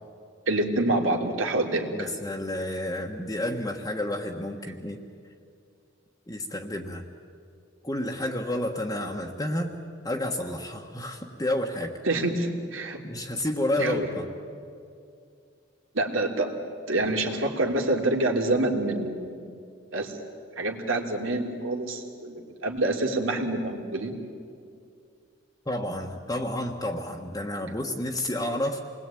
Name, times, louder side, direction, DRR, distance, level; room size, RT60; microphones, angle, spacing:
voice 1, 0.5-2.1 12.0-13.0 13.8-14.1 15.9-16.6 16.9-19.3 19.9-20.2 20.6-24.2, right 2 dB, 85° right, 2 dB, 3.0 m, -27 dB
voice 2, 1.9-5.0 6.3-7.0 7.8-9.7 10.0-12.0 13.0-14.3 25.6-28.8, left 1 dB, 20° left, 0 dB, 1.4 m, -30 dB
28.0 x 21.0 x 9.1 m, 2.4 s
head